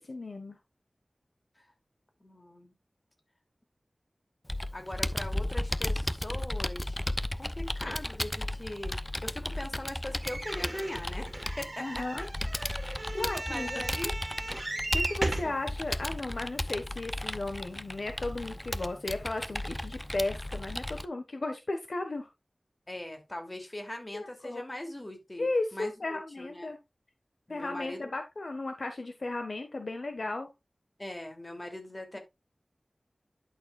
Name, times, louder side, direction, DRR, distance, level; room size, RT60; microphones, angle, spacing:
voice 1, 0.1-0.6 7.8-8.0 11.8-12.3 13.1-13.8 14.9-22.3 24.1-24.6 25.4-26.8 27.5-30.5, left 2 dB, 70° left, 1.4 m, -35 dB
voice 2, 2.2-2.7 4.7-7.0 7.4-8.9 9.2-11.3 11.6-12.3 13.2-14.1 14.5-14.6 15.4-15.6 22.9-26.7 27.5-28.1 31.0-32.2, left 1 dB, 30° left, 2.9 m, -40 dB
Computer keyboard, 4.5-21.1, left 1 dB, 15° left, 0.6 m, -35 dB
sound 1, 10.2-15.6 16.3-16.4 16.6-16.7, right 2 dB, 40° right, 2.0 m, -36 dB
11.5 x 6.5 x 2.4 m
wide cardioid pair, 70°, 0 cm